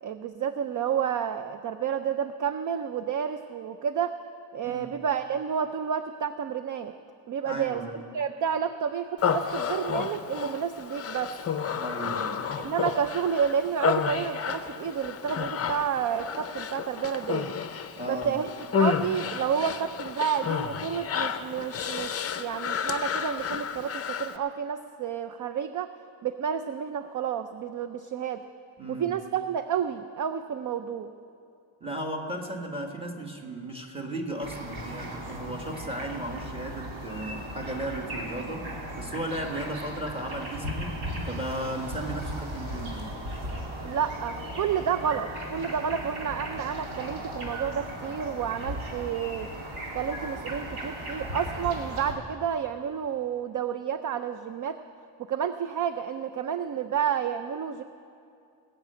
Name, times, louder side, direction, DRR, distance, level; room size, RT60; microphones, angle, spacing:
voice 1, 0.0-4.2 4.5-6.9 7.3-11.3 12.6-17.5 18.1-18.5 18.8-25.9 26.2-28.4 28.9-31.1 43.8-49.5 49.9-54.8 55.2-57.8, right 8 dB, 45° right, 9 dB, 0.4 m, -30 dB
voice 2, 4.6-5.0 7.4-8.0 11.8-12.7 18.0-18.4 28.8-29.1 31.8-38.7 39.0-41.0 41.3-43.2, right 1 dB, 10° right, 2 dB, 1.3 m, -35 dB
Human voice, 9.2-24.4, left 7 dB, 30° left, 0.6 m, -31 dB
sound 1, 34.4-52.1, equal, 90° right, 2.8 m, -37 dB
20.0 x 6.7 x 8.6 m, 2.5 s
wide cardioid pair, 175°, 46 cm